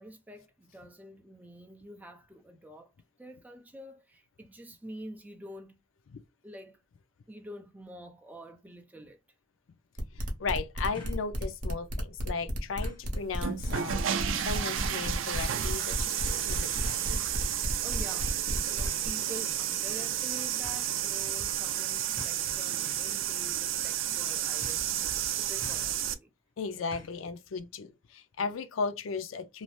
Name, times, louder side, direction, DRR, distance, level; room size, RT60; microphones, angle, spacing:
voice 1, 0.0-2.9 3.2-5.8 6.4-6.8 7.3-9.2 17.8-18.4 18.7-26.3, equal, 10° right, 0.5 m, -47 dB
sound 1, 9.0-9.1 10.9-11.3 11.7-11.8 12.8-13.1 14.6-14.9 15.9-16.1 16.5-17.2 18.8-19.1 20.1-20.2 20.6-20.8 22.2-22.5 23.0-23.3 23.5-23.6 24.6-24.9 25.6-26.0 26.9-27.3 27.6-27.7, left 2 dB, 25° left, 1.0 m, -47 dB
sound 2, 10.0-19.1, equal, 40° right, 0.9 m, -34 dB
voice 2, 10.1-14.0 14.5-17.2 26.6-29.6, left 4 dB, 80° left, 0.4 m, -36 dB
sound 3, 13.3-26.1, right 10 dB, 75° right, 0.4 m, -31 dB
2.7 x 2.0 x 3.0 m
head